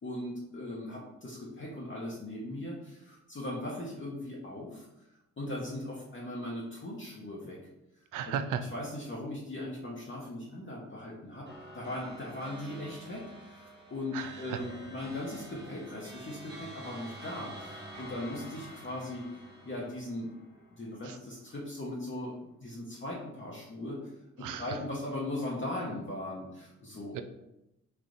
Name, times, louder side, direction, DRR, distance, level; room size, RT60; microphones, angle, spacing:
voice 1, 0.0-4.9 5.4-7.6 8.7-11.5 11.7-19.3 19.6-20.3 20.8-24.0 24.6-27.1, left 1 dB, 35° left, -4 dB, 1.0 m, -39 dB
voice 2, 8.1-8.6 14.1-14.6 21.0-21.2 24.4-24.8 27.1-27.2, right 8 dB, 60° right, 9 dB, 0.5 m, -35 dB
sound 1, 11.5-21.1, right 1 dB, 30° right, 1.4 m, -48 dB
3.4 x 2.4 x 3.9 m, 0.89 s
hypercardioid pair, 45°, 35 cm